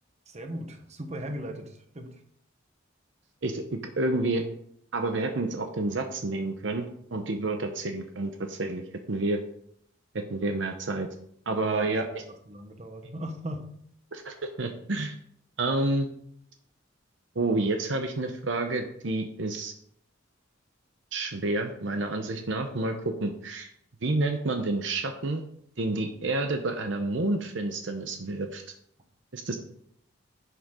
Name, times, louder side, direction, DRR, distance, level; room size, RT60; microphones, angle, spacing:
voice 1, 0.3-2.2 11.6-12.0 12.5-13.7, right 1 dB, 35° right, 5 dB, 1.3 m, -38 dB
voice 2, 3.4-4.4 4.9-8.8 9.1-9.4 10.3-11.1 11.5-12.1 14.1-15.2 15.6-16.1 17.3-19.7 21.1-23.7 24.0-25.4 25.8-28.6 29.3-29.6, right 2 dB, 65° right, 5 dB, 0.9 m, -29 dB
11.0 x 6.5 x 3.7 m, 0.68 s
head